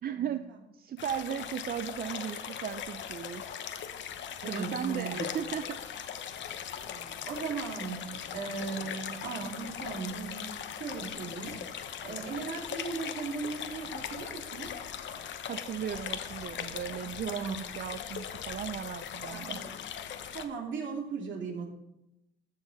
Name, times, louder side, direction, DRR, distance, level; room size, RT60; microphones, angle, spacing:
voice 1, 0.0-0.5 0.7-3.4 4.5-5.8 15.5-19.6, right 9 dB, 50° right, 10 dB, 0.5 m, -36 dB
sound 1, 1.0-20.4, left 8 dB, 65° left, 1.0 m, -39 dB
voice 2, 4.4-5.3 6.8-8.0 8.3-10.5 10.8-11.6 12.0-14.7 17.3-17.6 19.3-19.7 20.3-21.7, right 5 dB, 70° right, 1 dB, 2.5 m, -37 dB
14.0 x 6.5 x 4.1 m, 0.88 s
cardioid pair, 90°, 20 cm